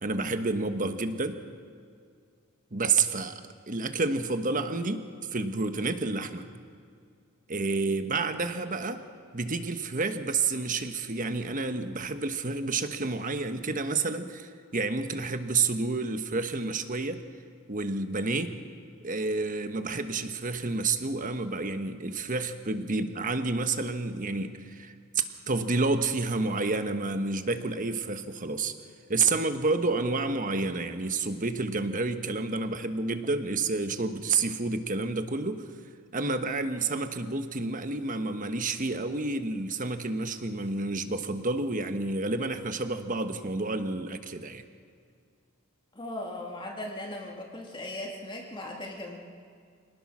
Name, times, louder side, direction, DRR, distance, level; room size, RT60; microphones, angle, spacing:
voice 1, 0.0-1.4 2.7-3.4 3.7-5.1 5.3-6.5 7.5-9.0 9.3-17.2 17.7-18.5 19.0-28.7 29.1-35.6 36.1-44.6, right 3 dB, 40° right, 9 dB, 1.2 m, -29 dB
voice 2, 45.9-49.2, left 1 dB, 25° left, -1 dB, 2.2 m, -38 dB
26.0 x 19.0 x 6.2 m, 2.2 s
head